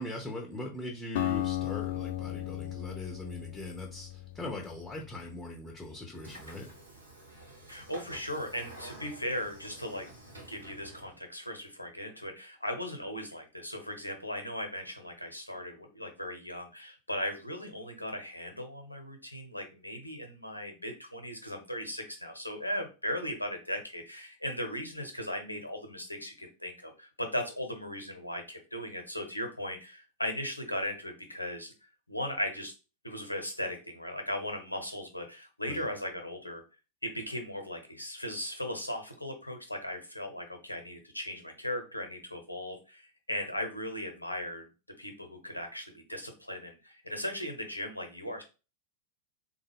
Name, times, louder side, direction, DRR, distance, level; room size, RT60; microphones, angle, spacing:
voice 1, 0.0-6.7 35.7-35.9, left 1 dB, 5° left, 1 dB, 0.7 m, -41 dB
Acoustic guitar, 1.2-5.3, left 13 dB, 55° left, 0.4 m, -35 dB
Train / Sliding door, 6.2-11.2, right 1 dB, 80° right, 1.1 m, -50 dB
voice 2, 7.7-10.1 10.5-31.7 32.1-32.7 33.0-36.6 37.0-44.7 45.0-48.4, left 1 dB, 85° left, 5 dB, 0.7 m, -37 dB
3.5 x 2.2 x 3.4 m, 0.31 s
figure-of-eight pair, 90°, 0 cm